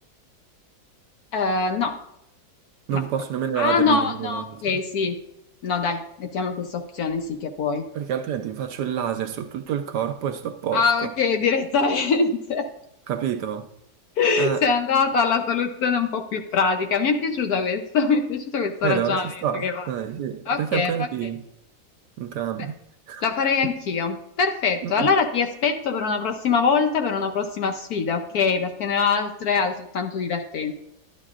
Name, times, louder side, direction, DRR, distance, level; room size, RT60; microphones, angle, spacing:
voice 1, 1.3-2.0 2.9-3.0 3.6-5.2 5.6-7.9 10.7-12.7 14.2-19.9 20.5-21.1 22.6-22.7 23.2-30.7, left 5 dB, 65° left, 1.0 m, -23 dB
voice 2, 2.9-4.6 7.9-11.1 13.1-13.7 14.4-14.6 18.8-21.4 22.2-22.8 23.1-23.2 23.6-23.7 24.8-25.1, right 9 dB, 70° right, 1.1 m, -28 dB
12.5 x 10.5 x 2.4 m
omnidirectional pair, 2.0 m